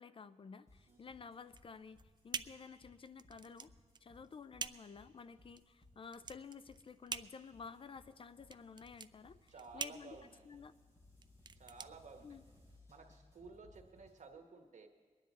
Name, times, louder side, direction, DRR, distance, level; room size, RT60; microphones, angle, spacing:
voice 1, 0.0-3.7 4.0-10.2 10.4-10.7 12.2-12.4, left 5 dB, 45° left, 14 dB, 0.4 m, -52 dB
sound 1, 0.7-14.2, left 2 dB, 25° left, 3.7 m, -65 dB
sound 2, 1.5-12.8, right 5 dB, 40° right, 0.4 m, -48 dB
voice 2, 9.5-10.5 11.5-12.4 12.9-14.9, right 4 dB, 90° right, 4 dB, 1.3 m, -55 dB
23.5 x 9.9 x 4.1 m, 1.5 s
wide cardioid pair, 95°, 12 cm